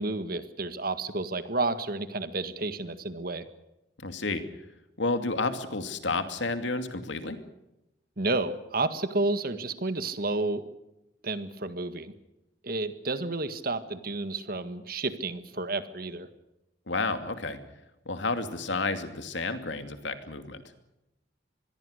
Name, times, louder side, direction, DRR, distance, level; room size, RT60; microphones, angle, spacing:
voice 1, 0.0-3.4 8.2-10.6 11.2-12.1 12.6-16.3, right 2 dB, 50° right, 11 dB, 1.7 m, -31 dB
voice 2, 4.0-4.4 5.0-7.4 16.9-17.6 18.1-20.6, left 3 dB, 75° left, 8 dB, 2.6 m, -31 dB
25.5 x 21.5 x 6.6 m, 0.92 s
head